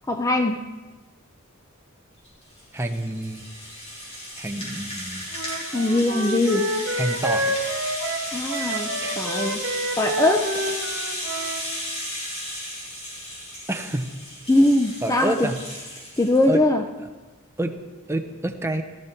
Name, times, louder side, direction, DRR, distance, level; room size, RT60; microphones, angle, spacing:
voice 1, 0.1-0.6 5.7-6.7 8.3-8.9 9.2-9.6 10.0-10.7 14.5-15.5 16.2-16.8, left 2 dB, 15° left, 5 dB, 0.6 m, -21 dB
Rattle (instrument), 2.2-16.5, equal, 30° left, 5.8 m, -34 dB
voice 2, 2.7-3.5 4.4-5.2 7.0-7.5 9.0-9.2 13.7-14.1 15.0-15.6 16.5-16.6 17.6-17.7 18.1-18.8, right 1 dB, 10° right, 6 dB, 0.9 m, -28 dB
Wind instrument woodwind instrument, 5.3-11.7, right 1 dB, 60° right, 1.5 m, -28 dB
16.5 x 14.0 x 4.5 m, 1.3 s
head